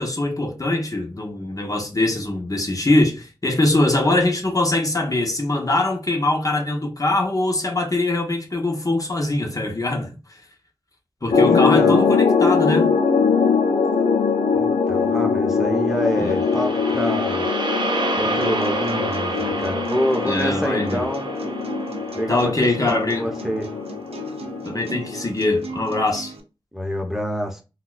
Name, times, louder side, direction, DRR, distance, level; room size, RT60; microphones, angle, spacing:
voice 1, 0.0-10.4 11.2-12.9 16.2-16.3 20.2-21.0 22.3-23.3 24.6-26.3, left 2 dB, 35° left, 0.9 m, -22 dB
sound 1, 11.3-25.3, left 5 dB, 75° left, 0.5 m, -22 dB
voice 2, 11.4-12.1 14.5-17.5 18.2-21.3 22.2-23.7 26.7-27.6, equal, 5° right, 0.9 m, -26 dB
sound 2, 16.0-24.3, right 2 dB, 50° right, 0.9 m, -30 dB
sound 3, 18.4-26.4, right 4 dB, 85° right, 0.6 m, -38 dB
3.8 x 2.3 x 2.4 m
cardioid pair, 45°, 10 cm